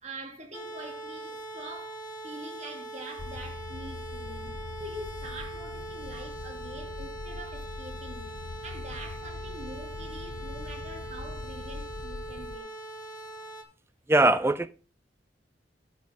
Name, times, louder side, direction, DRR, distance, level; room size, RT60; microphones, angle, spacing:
voice 1, 0.0-12.7, right 1 dB, 40° right, 2.3 m, -45 dB
sound 1, 0.5-13.6, right 2 dB, 25° left, 2.1 m, -42 dB
sound 2, 3.2-12.6, left 4 dB, 75° left, 0.6 m, -42 dB
voice 2, 14.1-14.7, right 2 dB, 15° right, 0.5 m, -21 dB
10.5 x 5.3 x 4.7 m
head